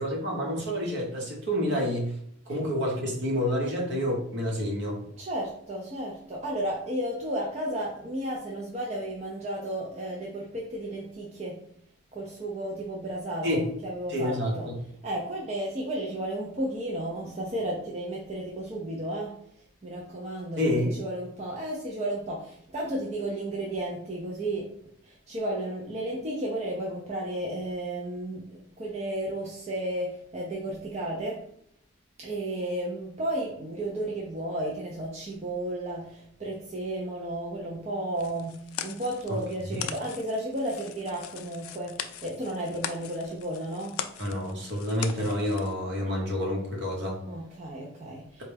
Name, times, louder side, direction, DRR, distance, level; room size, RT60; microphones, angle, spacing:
voice 1, 0.0-2.2 2.5-5.0 13.4-13.7 14.1-14.8 20.6-20.9 39.7-39.9 44.2-47.2, equal, 55° right, -2 dB, 1.0 m, -28 dB
voice 2, 5.2-11.6 12.1-14.7 15.0-19.4 19.8-24.7 25.0-31.4 32.2-44.0 47.3-48.4, right 1 dB, 30° right, -3 dB, 0.5 m, -33 dB
sound 1, 38.1-45.7, left 9 dB, 90° left, 0.3 m, -40 dB
4.0 x 2.2 x 3.3 m, 0.68 s
head